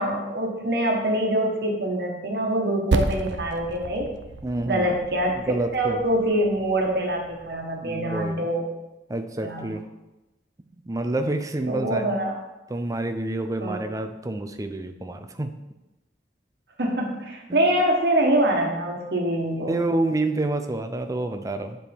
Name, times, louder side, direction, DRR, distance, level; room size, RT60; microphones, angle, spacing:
voice 1, 0.0-4.1 4.7-8.7 9.4-9.7 11.7-12.4 13.6-13.9 16.8-19.8, right 1 dB, 65° right, 0 dB, 1.3 m, -24 dB
Percussion, 2.9-7.7, right 3 dB, 85° right, 0.5 m, -32 dB
voice 2, 4.4-4.9 5.5-6.0 7.8-8.5 9.1-9.8 10.7-12.1 12.7-15.5 17.5-17.6 19.6-21.8, right 2 dB, 20° right, 7 dB, 0.5 m, -28 dB
9.3 x 4.6 x 3.5 m, 1.0 s
head